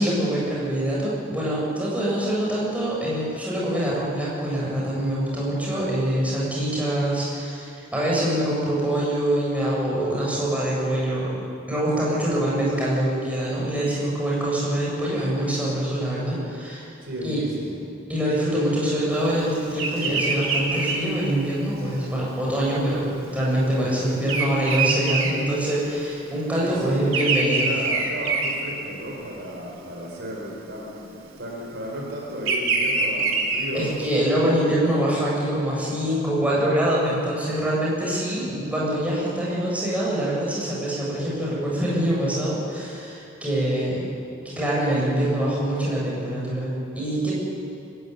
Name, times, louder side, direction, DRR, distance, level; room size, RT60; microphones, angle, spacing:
voice 1, 0.0-11.3 11.7-16.9 17.2-17.4 18.1-27.7 33.7-44.1 44.4-47.3, right 1 dB, 5° right, -6 dB, 7.6 m, -24 dB
voice 2, 17.0-17.8 26.6-27.1 27.4-33.9, equal, 55° right, -2 dB, 4.6 m, -34 dB
Bird vocalization bird call bird song, 19.7-26.2 26.4-29.3 29.8-30.1 31.1-34.1, right 4 dB, 80° right, 3.4 m, -25 dB
24.0 x 16.0 x 9.5 m, 2.7 s
head